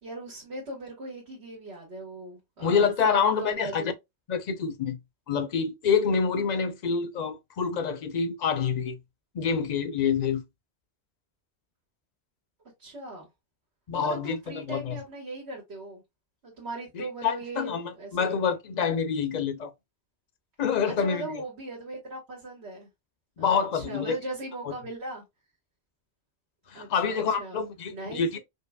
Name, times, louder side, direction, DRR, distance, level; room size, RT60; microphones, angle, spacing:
voice 1, 0.0-3.9 12.8-13.3 13.9-16.0 16.4-18.4 20.8-22.9 23.4-25.2 26.7-27.6 27.9-28.4, right 2 dB, 85° right, 1.7 m, -39 dB
voice 2, 2.6-3.9 4.3-5.0 5.3-9.0 9.3-10.4 13.9-15.0 16.9-19.7 20.6-21.3 23.4-24.2 26.7-28.4, left 6 dB, 50° left, 0.6 m, -27 dB
5.3 x 2.1 x 2.2 m
omnidirectional pair, 1.1 m